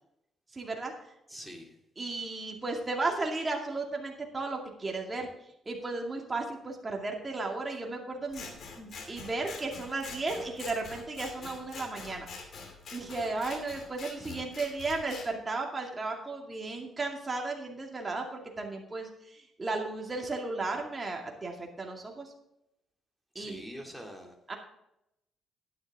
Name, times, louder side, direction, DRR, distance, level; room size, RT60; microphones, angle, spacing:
voice 1, 0.5-0.9 2.0-5.3 5.7-12.3 12.9-22.3 23.3-23.6 24.5-24.6, right 3 dB, 25° right, 1 dB, 2.3 m, -35 dB
voice 2, 1.3-1.8 23.3-24.4, equal, ahead, 2 dB, 2.6 m, -44 dB
Scissors, 8.3-15.3, left 4 dB, 60° left, 2.7 m, -45 dB
11.5 x 9.8 x 3.6 m, 0.81 s
cardioid pair, 90°, 0 cm